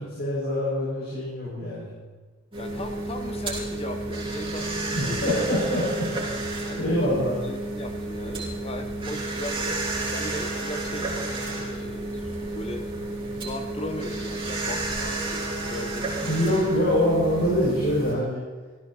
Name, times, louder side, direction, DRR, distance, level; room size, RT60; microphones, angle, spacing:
voice 1, 0.0-1.9 4.9-6.1 6.8-7.4 16.2-18.4, equal, 55° left, -8 dB, 6.4 m, -24 dB
sound 1, 2.5-18.1, right 2 dB, 25° right, 5.7 m, -31 dB
voice 2, 2.6-5.7 6.7-7.1 7.4-12.9 13.4-16.7, left 1 dB, 30° left, 6 dB, 0.9 m, -38 dB
18.0 x 16.0 x 4.3 m, 1.3 s
head